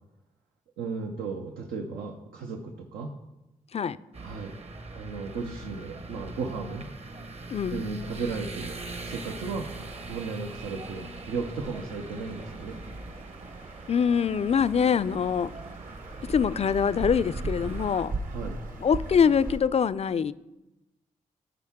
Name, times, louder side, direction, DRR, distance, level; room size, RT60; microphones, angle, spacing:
voice 1, 0.8-3.2 4.2-4.5 4.9-6.9 7.7-8.8 9.0-9.7 10.1-12.8 18.2-18.6, right 4 dB, 90° right, 0.7 m, -35 dB
sound 1, 4.1-18.0, right 3 dB, 40° right, 0.9 m, -42 dB
voice 2, 7.5-7.8 13.9-15.5 16.2-18.1 18.8-20.3, left 7 dB, 45° left, 0.4 m, -24 dB
sound 2, 9.6-19.6, right 2 dB, 65° right, 1.2 m, -39 dB
13.5 x 4.7 x 3.6 m
supercardioid pair, 45°, 15 cm